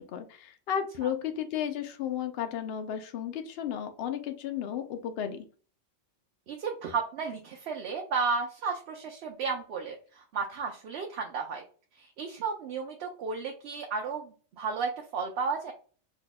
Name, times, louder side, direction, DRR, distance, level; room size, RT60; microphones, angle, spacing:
voice 1, 0.0-5.5, left 9 dB, 65° left, 7 dB, 0.8 m, -33 dB
voice 2, 6.5-11.6 12.0-15.7, right 5 dB, 75° right, 2 dB, 0.8 m, -33 dB
2.8 x 2.2 x 3.9 m, 0.39 s
omnidirectional pair, 1.1 m